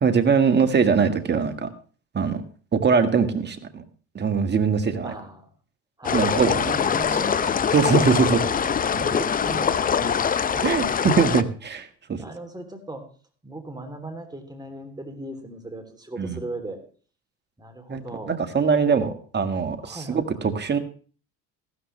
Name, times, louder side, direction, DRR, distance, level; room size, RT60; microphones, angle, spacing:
voice 1, 0.0-1.7 2.1-2.4 2.7-3.8 4.2-5.1 6.1-6.7 7.7-8.4 10.6-12.2 16.2-16.4 17.9-18.0 18.3-20.8, right 5 dB, 30° right, 8 dB, 1.7 m, -22 dB
voice 2, 5.0-5.5 6.0-10.3 10.5-10.9 12.1-13.0 13.4-16.8 17.6-18.4 18.9-19.2 19.8-20.2, right 2 dB, 10° right, 6 dB, 3.1 m, -38 dB
sound 1, 6.0-11.4, left 7 dB, 25° left, 0.6 m, -23 dB
14.5 x 13.0 x 3.3 m, 0.40 s
supercardioid pair, 90°, 35 cm